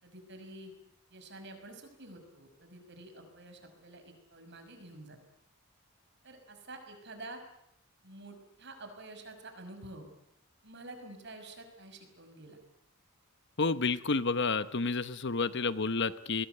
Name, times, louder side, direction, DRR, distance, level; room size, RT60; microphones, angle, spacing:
voice 1, 0.0-0.7 1.1-5.2 6.2-7.4 8.0-10.1 10.6-12.6, right 2 dB, 50° right, 6 dB, 5.9 m, -49 dB
voice 2, 13.6-16.5, left 4 dB, 55° left, 13 dB, 1.0 m, -30 dB
29.0 x 21.0 x 8.0 m, 0.78 s
head